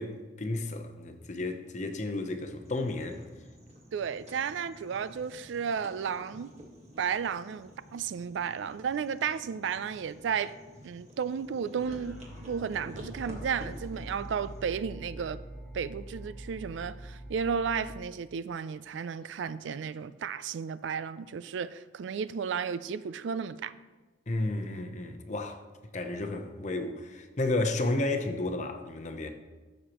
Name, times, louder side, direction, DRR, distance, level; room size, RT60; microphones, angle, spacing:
voice 1, 0.0-3.2 24.3-25.6 25.9-29.3, left 2 dB, 40° left, 0.7 m, -32 dB
sound 1, 2.6-14.7, equal, 35° right, 1.5 m, -51 dB
voice 2, 3.9-6.5 7.0-10.5 10.8-12.2 12.5-15.4 15.7-23.7, right 6 dB, 75° right, 0.3 m, -33 dB
sound 2, 11.7-18.0, right 1 dB, ahead, 1.7 m, -44 dB
14.5 x 6.5 x 3.0 m
head